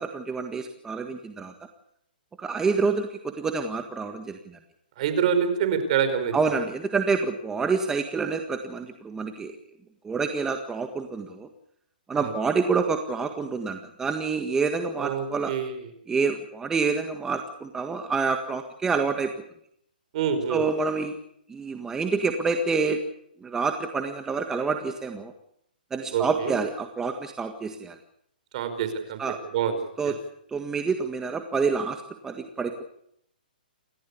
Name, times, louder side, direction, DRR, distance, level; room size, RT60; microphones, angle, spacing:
voice 1, 0.0-1.5 2.4-4.6 6.3-9.5 10.0-11.5 12.1-15.5 16.1-19.3 20.5-21.2 21.5-23.0 23.4-25.3 25.9-28.0 29.2-29.4 30.0-30.1 30.5-32.9, right 4 dB, 10° right, 6 dB, 1.7 m, -27 dB
voice 2, 5.0-6.3 12.1-12.3 15.0-15.9 20.1-20.6 26.1-26.6 28.5-29.2 29.5-29.8 30.0-30.1, right 7 dB, 45° right, 10 dB, 5.0 m, -26 dB
29.0 x 14.0 x 8.5 m, 0.72 s
hypercardioid pair, 145°, 5 cm